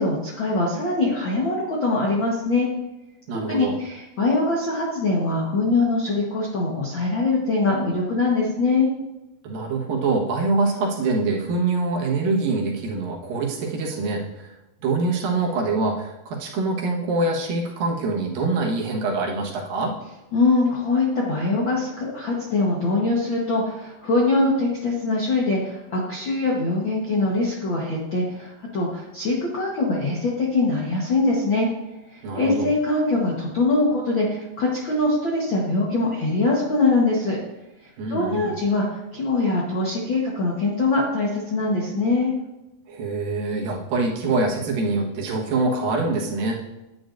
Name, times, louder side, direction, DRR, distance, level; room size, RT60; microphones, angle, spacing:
voice 1, 0.0-2.7 3.5-8.9 20.3-31.7 32.1-37.4 38.1-42.3, left 3 dB, 60° left, -3 dB, 1.2 m, -23 dB
voice 2, 3.3-3.8 9.4-14.5 14.8-19.9 32.2-32.7 38.0-38.5 42.9-46.6, right 3 dB, 75° right, -2 dB, 3.1 m, -24 dB
10.0 x 9.5 x 2.6 m, 0.95 s
omnidirectional pair, 4.1 m